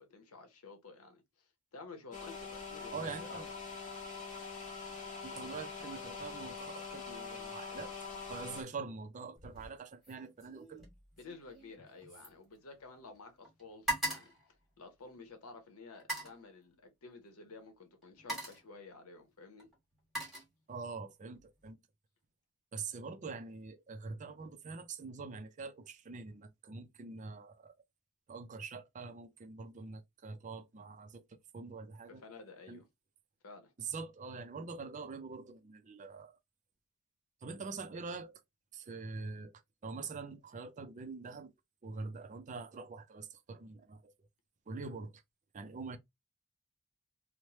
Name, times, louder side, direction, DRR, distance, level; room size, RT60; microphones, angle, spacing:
voice 1, 0.0-3.4 5.3-5.5 11.2-14.3 14.8-19.7 32.1-32.8 33.4-33.7, left 3 dB, 85° left, 0.8 m, -52 dB
sound 1, 2.1-8.6, left 4 dB, 35° left, 0.7 m, -44 dB
voice 2, 2.9-3.5 5.2-7.9 8.3-10.9 20.7-21.8 22.7-27.8 28.3-32.2 32.7-32.8 33.8-36.4 37.4-38.4 38.7-39.5 39.8-41.5 41.8-44.1 44.7-45.2 45.5-46.0, right 4 dB, 35° right, 0.4 m, -44 dB
sound 2, 9.4-9.7 10.0-13.2 13.4-15.3 15.9-16.4 17.4-17.6 18.0-18.7 19.6-21.0 21.3-21.7, right 2 dB, ahead, 1.3 m, -41 dB
3.1 x 2.1 x 2.8 m
head